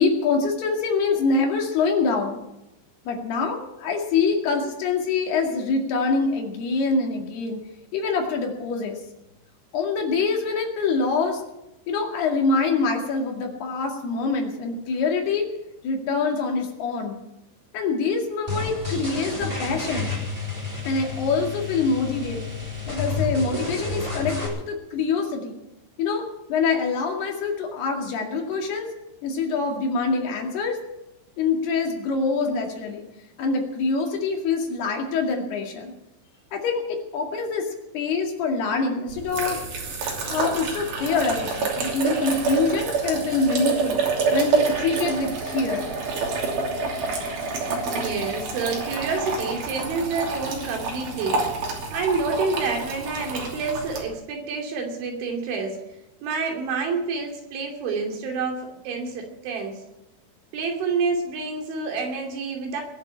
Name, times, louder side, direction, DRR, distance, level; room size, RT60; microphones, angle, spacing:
voice 1, 0.0-2.4 3.1-7.6 7.9-9.0 9.7-11.4 11.9-15.5 15.8-17.2 17.7-20.1 20.9-22.4 22.9-25.6 26.0-26.2 26.5-28.9 29.2-30.8 31.4-33.0 33.4-35.9 36.5-37.7 37.9-39.6 40.3-44.0 44.3-45.9, left 4 dB, 65° left, 2 dB, 4.0 m, -25 dB
sound 1, 18.5-24.5, left 3 dB, 10° right, 3.7 m, -30 dB
sound 2, 39.1-54.0, right 4 dB, 55° right, 4.4 m, -28 dB
voice 2, 47.9-55.8 56.2-59.8 60.5-62.8, right 4 dB, 80° right, 2 dB, 5.1 m, -28 dB
21.5 x 7.5 x 8.6 m, 0.91 s
omnidirectional pair, 5.4 m